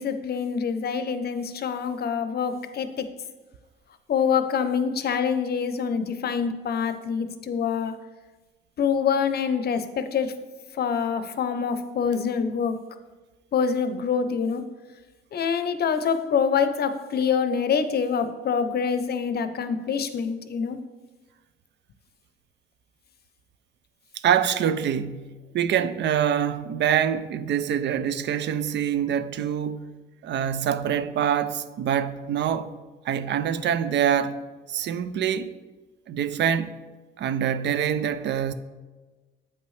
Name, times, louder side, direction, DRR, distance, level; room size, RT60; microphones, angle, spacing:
voice 1, 0.0-3.1 4.1-8.0 8.8-10.3 10.7-12.8 13.5-14.6 15.3-20.8, left 6 dB, 55° left, 0.6 m, -25 dB
voice 2, 24.2-29.9 30.2-32.7 33.0-34.4 34.7-35.5 36.1-36.7 37.2-38.5, right 9 dB, 65° right, 0.4 m, -25 dB
8.0 x 5.5 x 3.2 m
cardioid pair, 90°, 20 cm